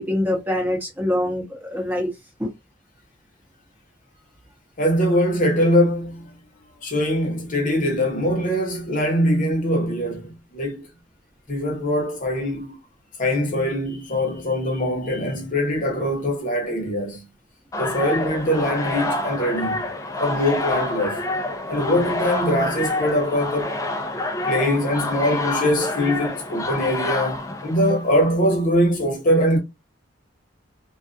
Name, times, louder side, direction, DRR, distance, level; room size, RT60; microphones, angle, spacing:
voice 1, 0.0-2.1 2.4-2.5, left 1 dB, 10° right, 0.8 m, -24 dB
voice 2, 4.8-6.3 6.8-10.9 11.5-12.8 13.2-17.3 17.8-19.8 20.2-21.2 21.7-23.8 24.5-29.6, equal, 45° left, 0.8 m, -22 dB
sound 1, 17.7-28.2, left 2 dB, 15° left, 0.4 m, -27 dB
2.3 x 2.3 x 2.4 m
head